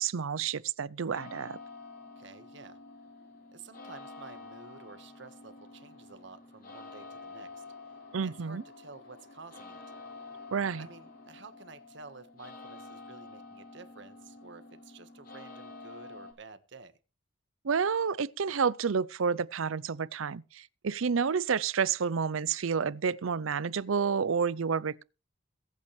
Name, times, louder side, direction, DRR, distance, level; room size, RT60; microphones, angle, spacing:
voice 1, 0.0-1.6 8.1-8.6 10.5-10.9 17.6-25.0, right 6 dB, 85° right, 0.6 m, -30 dB
sound 1, 1.1-16.3, left 3 dB, 45° left, 4.2 m, -49 dB
voice 2, 2.2-2.8 3.5-7.6 8.2-9.8 10.8-17.0, right 4 dB, 60° right, 1.4 m, -51 dB
22.0 x 8.5 x 3.2 m
head